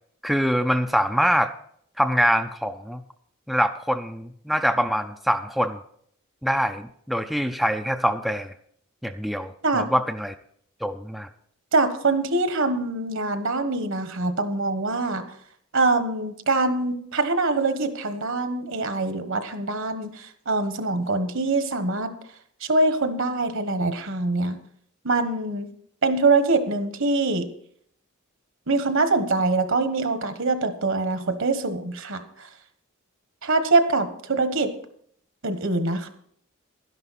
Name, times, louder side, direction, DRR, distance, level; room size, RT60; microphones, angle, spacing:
voice 1, 0.2-1.5 2.0-3.0 3.5-5.8 6.4-8.5 9.0-10.3 10.8-11.3, equal, ahead, 6 dB, 0.4 m, -24 dB
voice 2, 11.7-15.2 15.7-22.1 22.6-24.6 25.0-25.7 26.0-27.4 28.7-32.5 33.4-34.7 35.4-36.1, right 3 dB, 60° right, 9 dB, 1.3 m, -24 dB
12.0 x 10.5 x 4.1 m, 0.64 s
head